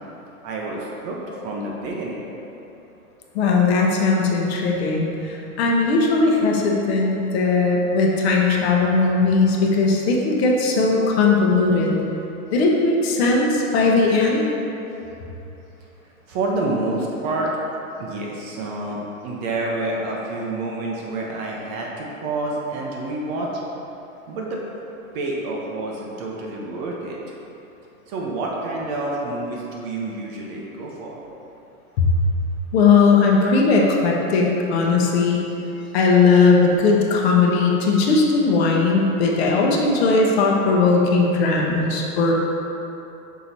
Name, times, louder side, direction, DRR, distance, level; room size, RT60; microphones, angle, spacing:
voice 1, 0.4-2.3 16.3-17.5 18.0-23.5 24.3-24.6 25.1-27.2 28.1-31.2, right 2 dB, 30° right, -2 dB, 0.6 m, -28 dB
voice 2, 3.3-12.0 12.5-14.4 32.0-32.1 32.7-35.4 35.9-42.3, left 4 dB, 45° left, -1 dB, 1.0 m, -18 dB
5.9 x 4.6 x 4.0 m, 3.0 s
hypercardioid pair, 145°, 43 cm